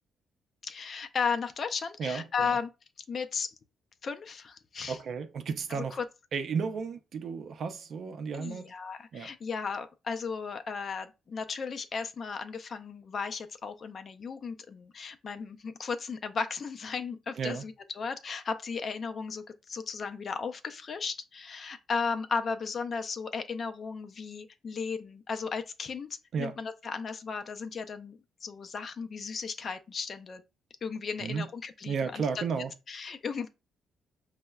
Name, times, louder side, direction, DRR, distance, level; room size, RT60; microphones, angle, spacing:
voice 1, 0.6-2.7 3.1-3.5 4.0-5.0 5.7-6.1 8.3-30.4 30.8-32.4 32.9-33.5, left 5 dB, 45° left, 0.4 m, -35 dB
voice 2, 2.0-2.6 4.9-6.0 6.3-8.7 9.1-9.3 17.4-17.6 26.3-26.5 31.2-31.5 31.9-32.7, right 5 dB, 60° right, 0.4 m, -33 dB
5.3 x 2.0 x 2.2 m
cardioid pair, 90°, 0 cm